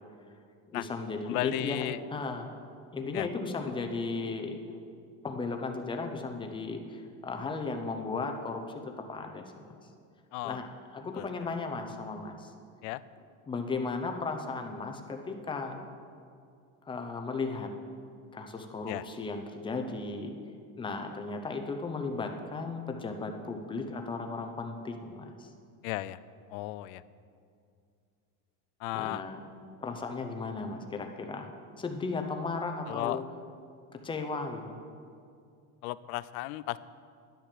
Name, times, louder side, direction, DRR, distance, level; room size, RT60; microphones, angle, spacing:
voice 1, 0.7-2.5 2.9-4.6 5.2-9.7 10.4-10.7 10.9-12.5 13.5-15.8 16.9-17.7 18.3-20.3 20.8-25.5 28.9-29.4 29.8-31.5 31.8-33.2 34.0-34.8, left 3 dB, 10° left, 5 dB, 0.7 m, -35 dB
voice 2, 1.2-2.0 3.1-3.3 10.3-10.6 11.2-11.3 12.8-13.0 18.9-19.0 25.8-26.2 26.5-27.0 28.8-29.2 32.9-33.2 35.8-36.8, left 17 dB, 80° left, 17 dB, 0.6 m, -34 dB
10.5 x 10.5 x 6.7 m, 2.3 s
cardioid pair, 170°, 43 cm